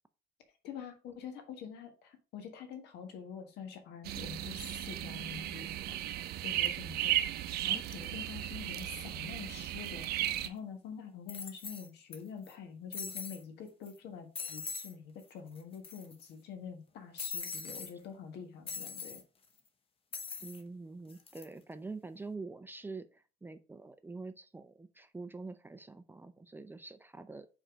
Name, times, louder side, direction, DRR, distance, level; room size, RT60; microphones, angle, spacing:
voice 1, 0.6-6.1 6.4-7.1 7.6-10.1 10.4-19.2, left 7 dB, 80° left, 1.5 m, -46 dB
sound 1, 4.0-10.5, right 13 dB, 70° right, 0.6 m, -35 dB
sound 2, 10.5-10.6 11.3-12.2 12.5-12.6 12.9-13.4 13.9-14.0 14.4-14.9 15.2-15.3 15.6-16.3 17.2-17.9 18.7-19.2 20.1-20.6 21.1-21.5, left 5 dB, 35° left, 1.0 m, -41 dB
voice 2, 20.4-27.5, right 3 dB, 10° right, 0.5 m, -45 dB
4.8 x 4.5 x 5.1 m
cardioid pair, 110°, 17 cm